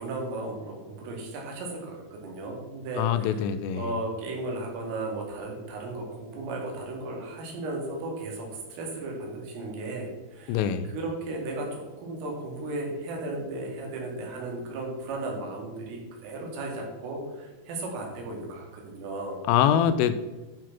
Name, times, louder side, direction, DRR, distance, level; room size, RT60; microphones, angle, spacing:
voice 1, 0.0-3.4 3.7-19.4, right 2 dB, 75° right, 0 dB, 4.9 m, -35 dB
voice 2, 3.0-3.9 10.5-10.9 19.5-20.1, left 9 dB, 85° left, 11 dB, 3.1 m, -24 dB
11.5 x 6.2 x 5.9 m, 1.2 s
omnidirectional pair, 5.8 m